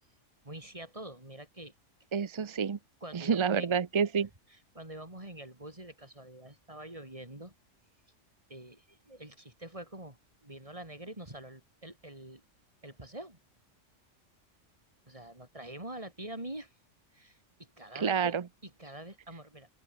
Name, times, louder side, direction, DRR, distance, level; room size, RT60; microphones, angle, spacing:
voice 1, 0.4-1.7 3.0-3.8 4.5-7.5 8.5-12.4 12.8-13.4 15.1-16.7 17.1-18.3 18.6-19.7, right 1 dB, 25° right, 4.4 m, -45 dB
voice 2, 2.1-2.8 3.1-4.3 17.9-18.4, right 6 dB, 45° right, 0.4 m, -28 dB
open air
omnidirectional pair, 1.3 m